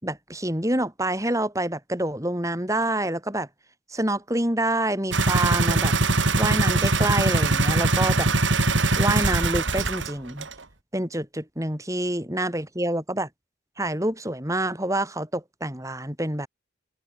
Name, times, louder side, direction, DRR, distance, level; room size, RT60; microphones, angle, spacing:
voice 1, 0.0-3.5 3.9-6.0 6.4-8.3 9.0-10.5 10.9-13.3 13.8-16.5, right 1 dB, 15° right, 7.8 m, -27 dB
sound 1, 5.1-10.1 10.4-10.5, right 2 dB, 85° right, 3.4 m, -22 dB
head